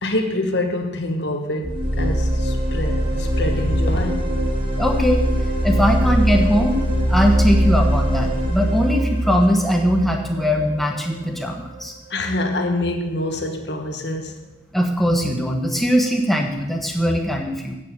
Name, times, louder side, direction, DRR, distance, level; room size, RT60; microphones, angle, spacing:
voice 1, 0.0-4.4 12.1-14.4, left 1 dB, 65° left, 4 dB, 1.3 m, -26 dB
sound 1, 1.6-11.4, equal, 50° right, 2.2 m, -21 dB
voice 2, 4.8-5.2 5.6-6.8 7.1-11.9 14.7-17.8, equal, ahead, 2 dB, 1.1 m, -20 dB
8.7 x 6.4 x 7.4 m, 1.0 s
head